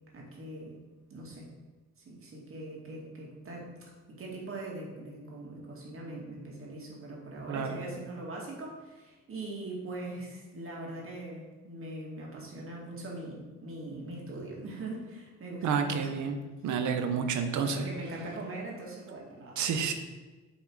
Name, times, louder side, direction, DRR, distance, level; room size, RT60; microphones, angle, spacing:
voice 1, 0.1-0.8 1.1-1.5 2.0-16.2 17.6-19.6, right 2 dB, 45° right, -2 dB, 2.1 m, -41 dB
voice 2, 7.5-7.8 15.6-16.4 16.6-17.8 19.6-19.9, right 6 dB, 75° right, 7 dB, 0.9 m, -29 dB
7.1 x 3.8 x 4.7 m, 1.3 s
cardioid pair, 90°, 30 cm